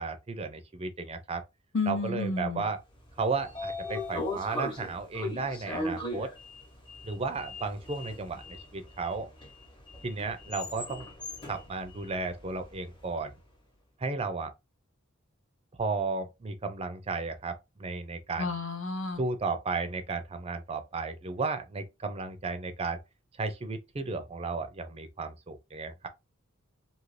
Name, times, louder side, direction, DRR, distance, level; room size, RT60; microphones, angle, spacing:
voice 1, 0.0-1.4 1.8-2.8 3.2-6.3 7.0-9.3 10.0-11.1 11.5-13.3 14.0-14.5 15.8-18.6 19.2-23.0 23.4-26.1, right 4 dB, 30° right, 0.4 m, -34 dB
voice 2, 1.7-2.6 18.4-19.2, left 3 dB, 70° left, 0.8 m, -31 dB
Sliding door, 3.0-13.1, left 1 dB, 25° left, 1.0 m, -39 dB
2.7 x 2.6 x 3.1 m
head